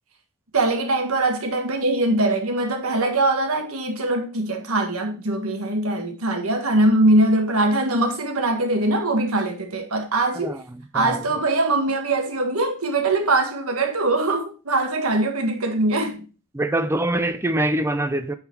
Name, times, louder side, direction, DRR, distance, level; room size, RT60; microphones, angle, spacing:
voice 1, 0.5-10.6 10.9-16.2, right 2 dB, 75° right, 1.6 m, -22 dB
voice 2, 16.5-18.3, right 1 dB, 10° right, 0.6 m, -24 dB
8.8 x 4.0 x 4.6 m
head